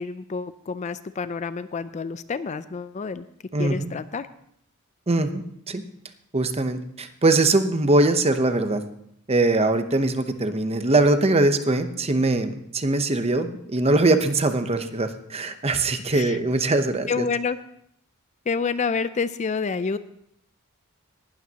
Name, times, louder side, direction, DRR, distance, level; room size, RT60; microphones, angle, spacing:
voice 1, 0.0-3.2 3.6-4.3 16.1-16.4 17.1-17.6 18.5-20.0, left 5 dB, 35° left, 14 dB, 0.4 m, -28 dB
voice 2, 3.5-3.9 5.1-5.8 6.3-8.8 9.3-17.2, right 2 dB, 30° right, 9 dB, 0.8 m, -22 dB
18.5 x 12.5 x 2.9 m, 0.70 s
head